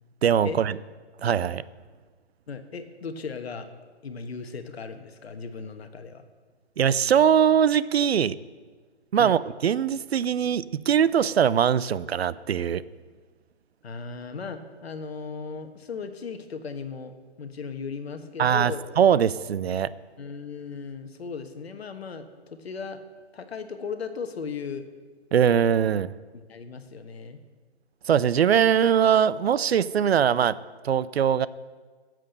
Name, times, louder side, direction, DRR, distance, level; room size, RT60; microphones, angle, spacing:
voice 1, 0.2-0.8 1.2-1.6 6.8-8.4 9.1-12.8 18.4-19.9 25.3-26.1 28.1-30.6 30.8-31.5, right 8 dB, 65° right, 18 dB, 0.5 m, -21 dB
voice 2, 2.5-3.7 4.0-6.2 9.2-9.4 13.8-18.8 20.2-23.0 23.3-24.9 26.3-27.4, left 5 dB, 65° left, 8 dB, 1.3 m, -37 dB
11.0 x 7.7 x 6.6 m, 1.4 s
hypercardioid pair, 160°, 34 cm